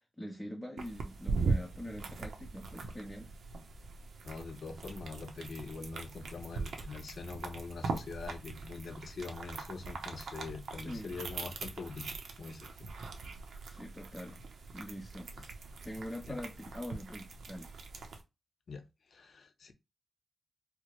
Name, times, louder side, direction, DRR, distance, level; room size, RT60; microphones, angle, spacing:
voice 1, 0.2-3.3 10.7-11.2 13.7-15.5 15.8-17.7, equal, 5° left, 0.5 m, -44 dB
sound 1, 0.8-18.2, right 4 dB, 90° right, 0.6 m, -41 dB
voice 2, 4.2-12.1 12.4-12.7 16.3-16.4 18.7-18.8 19.1-19.7, left 4 dB, 55° left, 0.5 m, -43 dB
4.5 x 2.0 x 2.9 m
wide cardioid pair, 180°, 0 cm